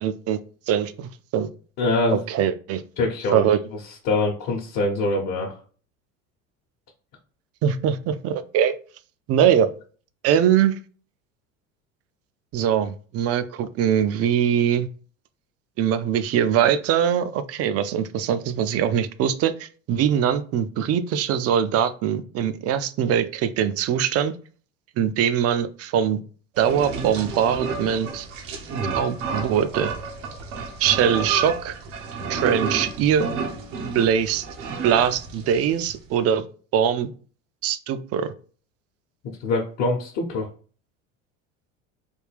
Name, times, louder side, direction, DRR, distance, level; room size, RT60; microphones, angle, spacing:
voice 1, 0.0-0.4 0.7-1.5 2.1-2.8 3.3-3.6 7.6-8.7 9.3-9.7 10.2-10.8 12.5-14.9 15.8-24.3 25.0-26.2 26.6-28.3 29.0-29.9 30.8-31.7 32.3-33.3 33.9-36.4 36.7-37.1 37.6-38.3, right 9 dB, 40° right, 13 dB, 0.4 m, -22 dB
voice 2, 1.8-2.2 3.0-3.5 4.0-5.5 39.4-40.5, left 2 dB, 55° left, -1 dB, 0.9 m, -24 dB
sound 1, 26.5-36.0, right 4 dB, 80° right, 0.9 m, -31 dB
3.5 x 2.3 x 3.3 m, 0.40 s
hypercardioid pair, 85°, 37 cm